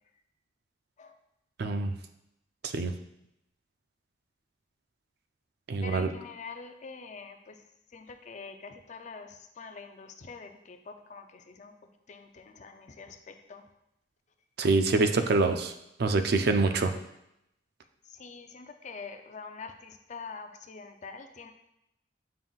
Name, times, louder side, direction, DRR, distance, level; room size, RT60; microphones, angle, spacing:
voice 1, 1.6-1.9 2.6-2.9 5.7-6.1 14.6-15.7 16.0-16.9, right 3 dB, 55° right, 7 dB, 0.4 m, -25 dB
voice 2, 5.8-7.6 7.9-11.7 12.1-13.6 18.1-21.5, left 4 dB, 40° left, 6 dB, 0.4 m, -45 dB
7.5 x 5.4 x 2.4 m, 0.83 s
head